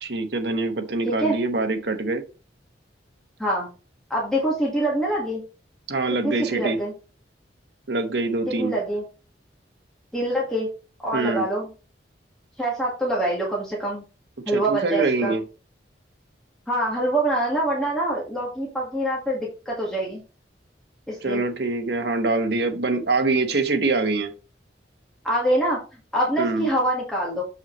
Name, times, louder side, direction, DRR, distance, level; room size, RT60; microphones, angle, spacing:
voice 1, 0.0-2.2 5.9-6.8 7.9-8.8 11.1-11.5 14.5-15.4 21.2-24.3 26.4-26.7, right 3 dB, 65° right, 5 dB, 1.1 m, -24 dB
voice 2, 1.1-1.4 3.4-3.7 4.1-5.4 6.2-6.9 8.5-9.0 10.1-10.7 11.0-11.7 12.6-14.0 14.5-15.3 16.7-20.2 21.1-21.4 25.2-25.8 26.1-27.4, right 1 dB, 5° left, -5 dB, 1.7 m, -25 dB
7.3 x 5.6 x 3.1 m, 0.34 s
head